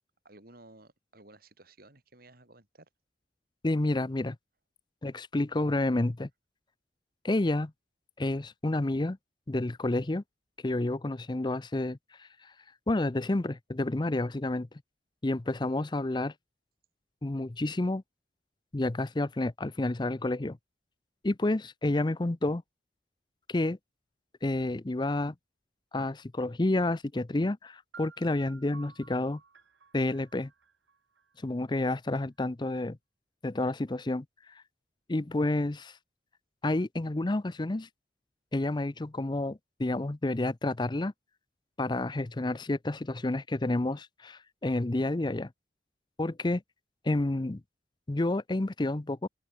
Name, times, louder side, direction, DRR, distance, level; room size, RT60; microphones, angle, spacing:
voice 1, 0.2-2.9, right 2 dB, 55° right, 3.6 m, -55 dB
voice 2, 3.6-4.4 5.0-6.3 7.2-7.7 8.2-9.2 9.5-10.2 10.6-12.3 12.9-14.7 15.2-16.3 17.2-18.0 18.7-20.6 21.2-22.6 23.5-23.8 24.4-25.3 25.9-29.4 29.9-30.5 31.4-33.0 33.4-34.2 35.1-36.0 36.6-37.9 38.5-41.1 41.8-45.5 46.2-46.6 47.0-47.6 48.1-49.3, left 2 dB, 25° left, 0.6 m, -29 dB
sound 1, 27.9-31.8, right 5 dB, 85° right, 1.7 m, -55 dB
open air
head